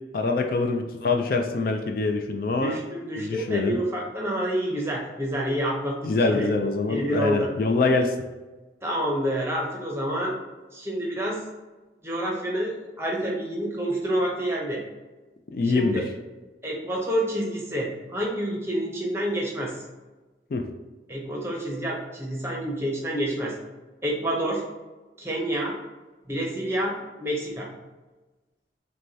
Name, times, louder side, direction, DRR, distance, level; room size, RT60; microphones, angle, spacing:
voice 1, 0.1-2.8 3.2-3.8 6.0-8.1 15.5-16.0 20.5-20.7, left 3 dB, 55° left, 4 dB, 0.4 m, -24 dB
voice 2, 2.6-6.5 6.9-7.5 8.8-10.4 10.7-11.4 12.0-14.8 15.6-16.0 16.6-19.8 21.1-23.6 24.0-24.6 25.2-25.7 26.3-27.7, right 1 dB, 15° right, -2 dB, 0.7 m, -28 dB
6.2 x 2.2 x 2.7 m, 1.2 s
head